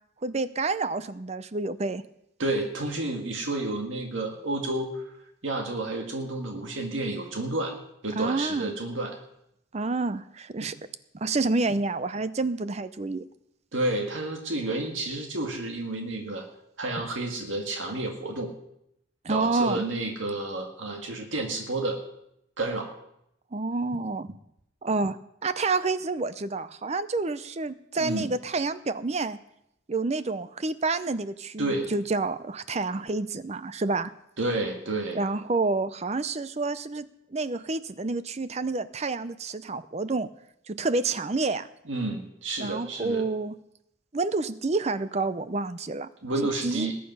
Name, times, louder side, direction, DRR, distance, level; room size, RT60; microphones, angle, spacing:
voice 1, 0.2-2.0 8.2-8.7 9.7-10.7 11.1-13.2 19.2-19.8 23.5-24.3 24.8-29.4 29.9-34.1 35.1-37.1 37.3-40.3 40.7-41.7 42.6-43.5 44.1-46.1 46.6-46.9, right 3 dB, 35° right, 14 dB, 0.5 m, -28 dB
voice 2, 2.4-5.0 5.4-7.7 8.0-9.2 10.6-10.7 13.7-16.4 16.8-18.5 19.3-22.0 22.6-22.9 28.0-28.3 31.6-31.9 34.4-35.2 41.9-43.2 46.2-47.0, right 2 dB, 70° right, 2 dB, 1.8 m, -30 dB
20.0 x 8.7 x 5.5 m, 0.81 s
head